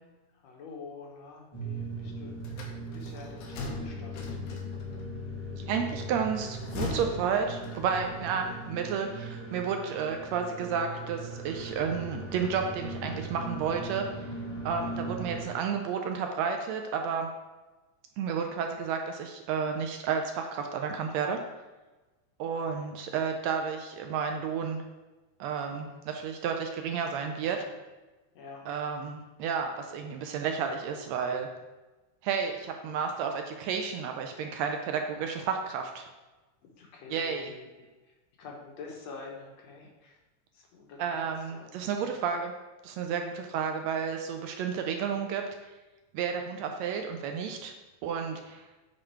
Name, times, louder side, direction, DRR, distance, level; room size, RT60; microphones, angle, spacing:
voice 1, 0.3-2.3 2.9-4.2 14.8-15.1 22.4-22.9 25.7-26.0 27.5-27.6 28.3-28.6 36.6-40.2 40.5-41.2 41.5-42.1 43.5-43.6 46.7-46.8, left 4 dB, 70° left, -1 dB, 2.1 m, -47 dB
sound 1, 1.5-15.4, right 1 dB, 30° left, 0.5 m, -39 dB
sound 2, 2.4-5.0 6.3-8.1, left 3 dB, 85° left, 2.4 m, -39 dB
voice 2, 5.5-14.3 14.6-17.3 18.2-21.4 22.4-24.8 25.4-27.6 28.7-31.5 32.2-36.1 37.1-37.5 41.0-42.5 42.8-45.7 46.1-47.7 48.0-48.7, right 6 dB, 75° right, 4 dB, 1.7 m, -31 dB
8.6 x 3.7 x 4.4 m, 1.1 s
omnidirectional pair, 3.3 m